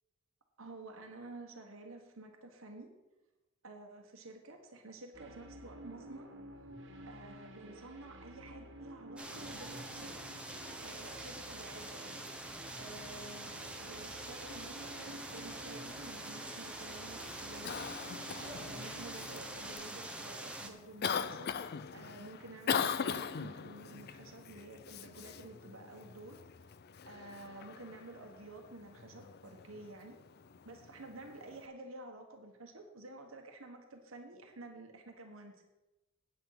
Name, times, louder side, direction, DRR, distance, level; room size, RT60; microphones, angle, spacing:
voice 1, 0.6-2.9 3.6-6.3 7.1-10.2 10.5-12.1 12.8-17.8 18.4-26.4 27.1-30.2 30.6-35.6, right 2 dB, 90° right, 4 dB, 1.4 m, -51 dB
sound 1, 5.1-19.7, equal, 65° right, 1.6 m, -52 dB
sound 2, 9.2-20.7, right 1 dB, 5° right, 1.0 m, -45 dB
Cough, 17.2-31.7, left 7 dB, 50° left, 0.5 m, -41 dB
9.0 x 8.7 x 5.8 m, 1.0 s
head